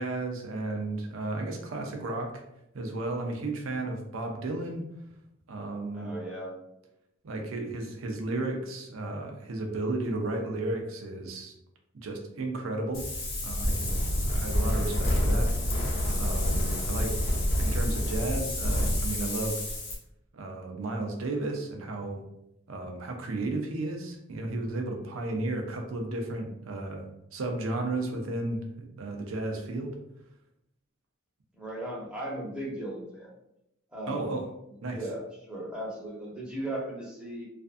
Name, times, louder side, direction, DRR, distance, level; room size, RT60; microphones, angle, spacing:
voice 1, 0.0-2.4 2.7-4.9 5.5-6.1 7.2-11.5 12.0-13.1 13.4-15.5 16.2-19.7 20.3-22.2 22.7-27.0 27.3-30.0 34.1-34.5 34.8-35.0, right 2 dB, 85° right, 3 dB, 0.5 m, -33 dB
voice 2, 5.9-6.5 31.5-33.3 33.9-34.4 34.9-37.4, right 1 dB, 5° right, -5 dB, 0.7 m, -37 dB
Wind, 12.9-20.0, left 1 dB, 90° left, 0.8 m, -28 dB
2.5 x 2.4 x 2.4 m, 0.82 s
head